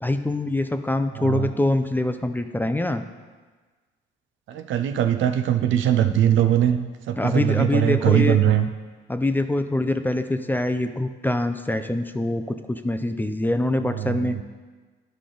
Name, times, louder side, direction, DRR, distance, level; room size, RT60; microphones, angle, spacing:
voice 1, 0.0-3.0 7.2-8.4 9.1-14.4, left 1 dB, 10° left, 8 dB, 0.5 m, -24 dB
voice 2, 1.1-1.5 4.5-6.8 7.1-8.7 13.9-14.4, right 10 dB, 75° right, 9 dB, 0.6 m, -21 dB
11.5 x 5.0 x 3.9 m, 1.4 s
cardioid pair, 90°, 20 cm